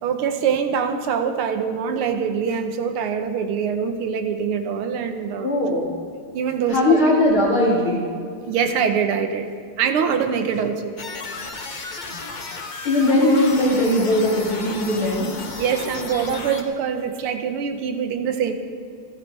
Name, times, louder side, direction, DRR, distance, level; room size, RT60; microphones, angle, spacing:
voice 1, 0.0-5.5 6.3-7.0 8.5-9.5 9.8-10.9 11.4-11.8 15.6-18.5, right 7 dB, 80° right, 6 dB, 2.0 m, -24 dB
voice 2, 5.4-5.9 6.7-8.0 12.8-15.3, left 1 dB, 70° left, -5 dB, 3.7 m, -19 dB
sound 1, 11.0-16.6, left 3 dB, 45° left, 0.5 m, -33 dB
29.0 x 11.5 x 3.4 m, 2.4 s
omnidirectional pair, 2.4 m